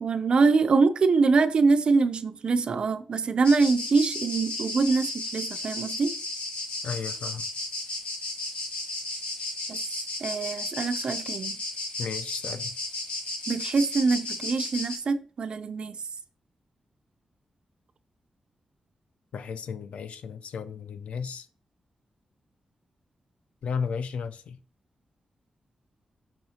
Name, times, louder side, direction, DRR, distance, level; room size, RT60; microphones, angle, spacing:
voice 1, 0.0-6.1 9.7-9.8 10.2-11.6 13.5-16.0, right 4 dB, 50° right, 0.5 m, -24 dB
sound 1, 3.4-15.0, left 2 dB, 60° left, 1.5 m, -34 dB
voice 2, 6.8-7.5 12.0-12.7 19.3-21.5 23.6-24.6, left 6 dB, 85° left, 0.5 m, -34 dB
7.1 x 5.5 x 2.9 m
wide cardioid pair, 170°, 2 cm